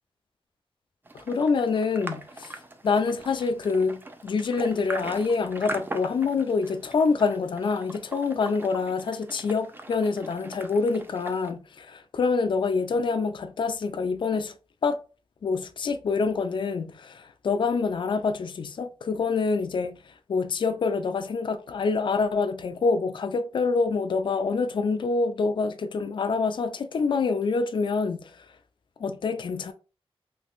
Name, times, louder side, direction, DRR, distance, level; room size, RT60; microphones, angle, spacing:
voice 1, 1.1-14.5 14.8-15.0 15.4-28.5 29.0-29.7, left 4 dB, 55° left, 0.3 m, -26 dB
sound 1, 1.1-11.5, right 2 dB, 20° right, 0.4 m, -41 dB
3.5 x 2.8 x 2.4 m
wide cardioid pair, 155°, 10 cm